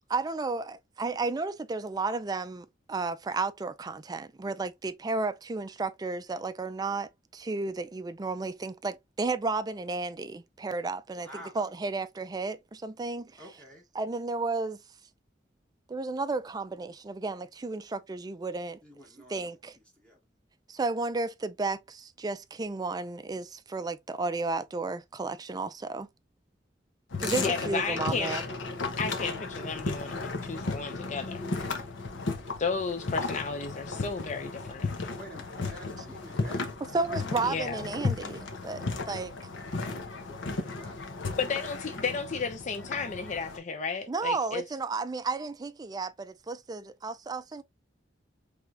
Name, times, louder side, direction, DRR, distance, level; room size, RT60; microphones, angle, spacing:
voice 1, 0.1-11.3 11.5-13.5 13.9-14.8 15.9-18.8 19.3-19.8 20.7-26.1 27.2-28.4 36.9-39.3 44.1-47.6, right 3 dB, 20° right, 0.4 m, -33 dB
voice 2, 11.2-11.6 13.4-13.8 18.8-19.6 20.0-20.2 35.1-36.7 38.0-38.6 40.5-41.3, equal, 5° left, 1.1 m, -49 dB
sound 1, 27.1-43.6, left 3 dB, 85° left, 0.9 m, -35 dB
voice 3, 27.4-28.3 29.0-31.4 32.6-35.1 37.5-37.8 41.4-44.6, left 5 dB, 40° left, 0.5 m, -33 dB
4.7 x 3.4 x 2.5 m
head